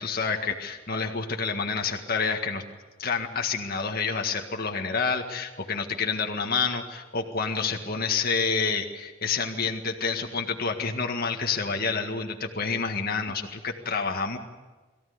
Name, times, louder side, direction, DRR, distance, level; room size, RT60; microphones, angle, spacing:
voice 1, 0.0-2.6 3.0-14.4, left 5 dB, 50° left, 3 dB, 1.8 m, -28 dB
22.0 x 15.5 x 9.5 m, 1.2 s
head